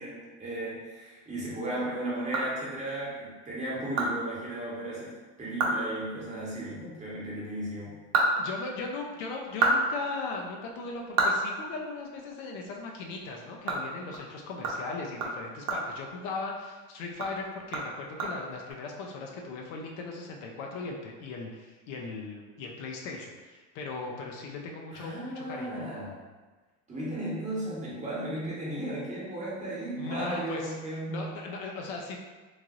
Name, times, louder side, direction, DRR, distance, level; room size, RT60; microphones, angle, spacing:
voice 1, 0.0-7.9 24.9-26.2 26.9-31.3, right 1 dB, 20° right, -7 dB, 1.1 m, -35 dB
sound 1, 1.9-3.1 3.5-3.6 4.0-4.1 4.4-4.5 5.0-5.1 5.4-5.9 6.1-6.2 7.7-9.0 9.4-12.3 12.6-12.8 13.1-16.7 17.1-18.7, right 3 dB, 75° right, 0.8 m, -31 dB
voice 2, 8.4-25.9 30.0-30.7 31.1-32.2, left 3 dB, 60° left, 0 dB, 0.5 m, -38 dB
3.2 x 2.6 x 2.4 m, 1.3 s
supercardioid pair, 120°, 37 cm